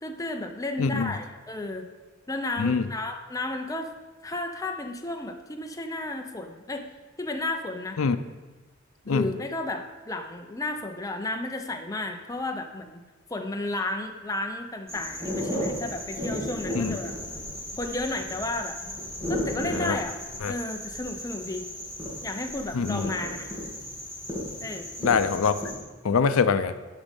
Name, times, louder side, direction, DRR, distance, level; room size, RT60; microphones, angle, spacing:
voice 1, 0.0-1.9 2.3-3.9 4.2-6.8 7.2-8.0 9.1-13.0 13.3-17.1 17.8-18.8 19.3-20.2 20.4-21.7 22.2-23.5 24.6-24.9, left 2 dB, 15° left, 4 dB, 0.6 m, -33 dB
voice 2, 0.8-1.1 2.6-2.8 8.0-8.2 9.1-9.3 16.7-17.0 19.6-20.0 20.4-20.5 22.7-23.1 25.0-25.5 26.0-26.7, left 5 dB, 90° left, 12 dB, 0.5 m, -24 dB
sound 1, 14.9-25.7, left 1 dB, 15° right, 2.4 m, -34 dB
11.5 x 5.3 x 5.2 m, 1.2 s
head